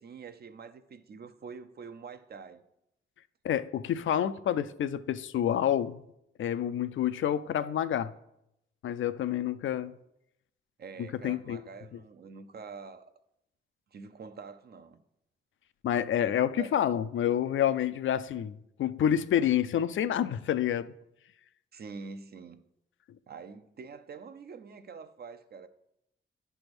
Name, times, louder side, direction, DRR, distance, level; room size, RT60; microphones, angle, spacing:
voice 1, 0.0-2.6 10.8-13.1 13.9-15.0 16.6-16.7 21.7-22.6 23.3-25.7, right 5 dB, 55° right, 0.6 m, -45 dB
voice 2, 3.4-6.0 6.4-8.1 8.8-9.9 11.2-11.6 15.8-20.9, left 10 dB, 75° left, 0.4 m, -28 dB
9.6 x 3.4 x 6.1 m
cardioid pair, 100°, 20 cm